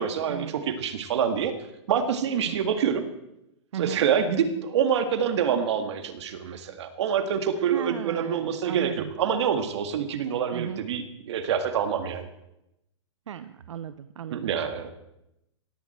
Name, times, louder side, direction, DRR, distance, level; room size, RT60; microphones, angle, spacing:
voice 1, 0.0-1.5 1.9-3.1 3.8-12.3 14.3-14.9, right 7 dB, 70° right, 8 dB, 1.9 m, -26 dB
voice 2, 3.7-4.1 6.4-6.7 7.7-9.1 10.5-10.8 13.3-14.5, right 9 dB, 90° right, 12 dB, 0.7 m, -36 dB
17.5 x 14.5 x 4.4 m, 0.87 s
hypercardioid pair, 145°, 15 cm